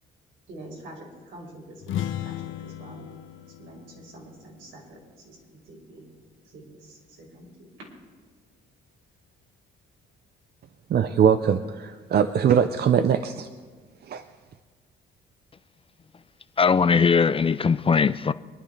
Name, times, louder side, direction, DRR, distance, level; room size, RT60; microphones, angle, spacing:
voice 1, 0.5-3.1 3.6-5.0 5.2-6.1 6.4-7.7, right 1 dB, 80° right, 5.1 m, -46 dB
sound 1, 1.8-5.5, left 11 dB, 75° left, 0.7 m, -36 dB
voice 2, 10.9-13.5 14.0-14.2, right 8 dB, 55° right, 0.7 m, -21 dB
voice 3, 16.6-18.3, left 5 dB, 30° left, 0.4 m, -20 dB
25.5 x 11.0 x 3.4 m
cardioid pair, 90°, 20 cm